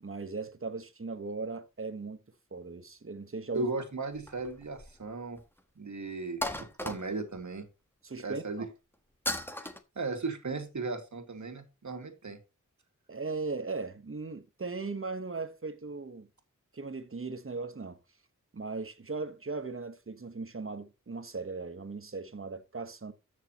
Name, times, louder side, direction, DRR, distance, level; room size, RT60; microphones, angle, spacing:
voice 1, 0.0-2.2 2.5-3.7 8.0-8.7 13.1-16.3 16.7-18.0 18.5-23.1, right 3 dB, 40° right, 1.4 m, -38 dB
voice 2, 3.5-5.4 5.8-7.7 8.2-8.7 9.6-9.7 10.0-12.4, right 3 dB, 65° right, 2.4 m, -36 dB
sound 1, 4.2-5.1 5.4-5.5 6.4-7.4 9.3-9.8, left 1 dB, 5° left, 1.4 m, -35 dB
14.0 x 6.8 x 3.1 m
wide cardioid pair, 70°, 32 cm